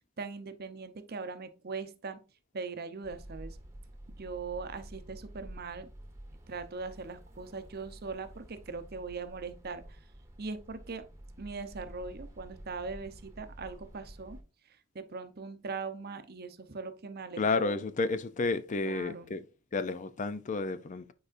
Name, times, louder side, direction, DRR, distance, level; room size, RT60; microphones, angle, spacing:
voice 1, 0.2-2.2 2.5-3.6 4.1-5.9 6.5-10.1 10.4-11.0 11.4-14.4 14.7-17.8 18.8-19.3, right 4 dB, 50° right, 0.7 m, -40 dB
sound 1, 3.0-14.4, right 1 dB, 15° right, 1.2 m, -50 dB
voice 2, 17.4-19.4 19.7-21.1, left 3 dB, 40° left, 0.4 m, -31 dB
9.0 x 4.8 x 2.5 m
head